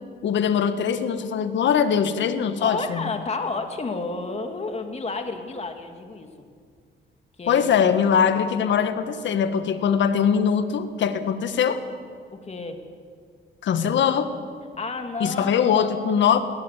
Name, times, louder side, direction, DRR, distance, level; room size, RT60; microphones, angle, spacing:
voice 1, 0.2-3.0 7.5-11.8 13.6-14.3 15.2-16.4, left 7 dB, 70° left, 9 dB, 1.7 m, -22 dB
voice 2, 2.6-6.3 7.4-7.7 8.7-8.9 12.3-12.8 13.8-13.9 14.8-15.9 16.2-16.4, left 3 dB, 35° left, 5 dB, 2.6 m, -31 dB
21.0 x 17.5 x 8.4 m, 2.1 s
cardioid pair, 90°, 20 cm